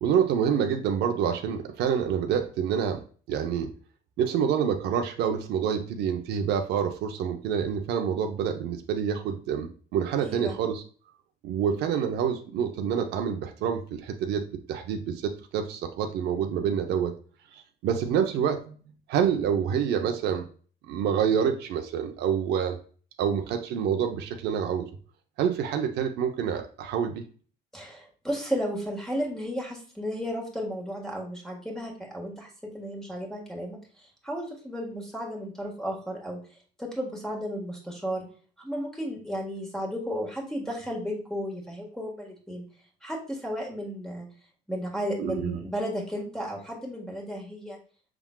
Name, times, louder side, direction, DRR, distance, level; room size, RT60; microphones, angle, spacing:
voice 1, 0.0-3.0 3.3-3.7 4.2-10.8 11.4-14.4 14.7-17.1 17.8-18.8 19.1-20.5 20.9-22.8 23.2-24.9 25.4-27.2 45.2-45.6, right 8 dB, 80° right, 5 dB, 0.7 m, -27 dB
voice 2, 10.2-10.6 27.7-36.4 36.8-38.3 38.6-42.6 43.0-44.3 44.7-47.8, equal, 5° left, -1 dB, 1.6 m, -34 dB
5.9 x 3.7 x 2.3 m, 0.41 s
cardioid pair, 110°, 17 cm